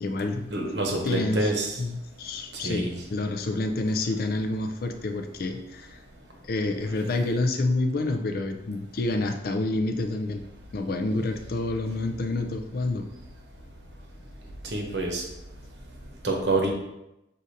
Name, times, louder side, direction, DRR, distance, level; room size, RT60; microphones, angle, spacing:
voice 1, 0.0-0.5 1.0-1.5 1.8-6.0 6.5-10.4 10.7-13.1, left 2 dB, 50° left, 5 dB, 0.4 m, -28 dB
voice 2, 0.5-1.8 2.6-2.9 14.6-15.2 16.2-16.7, right 2 dB, 65° right, 1 dB, 0.9 m, -27 dB
6.3 x 2.5 x 2.7 m, 0.90 s
head